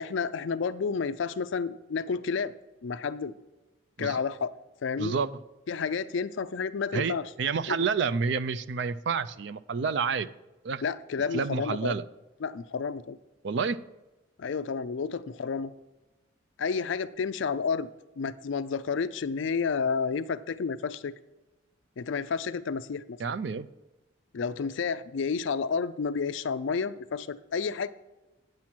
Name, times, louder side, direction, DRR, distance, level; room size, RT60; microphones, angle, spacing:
voice 1, 0.0-2.5 2.8-3.3 4.0-4.5 4.8-5.1 5.7-7.3 7.7-7.8 10.8-11.9 12.4-13.2 14.4-15.7 16.6-17.9 18.2-21.1 22.0-23.2 24.3-27.9, left 5 dB, 70° left, 13 dB, 0.4 m, -30 dB
voice 2, 5.0-5.4 6.9-10.3 10.6-10.8 11.3-12.0 13.4-13.8 23.2-23.7, right 5 dB, 60° right, 15 dB, 0.4 m, -29 dB
9.3 x 7.4 x 4.4 m, 1.1 s
head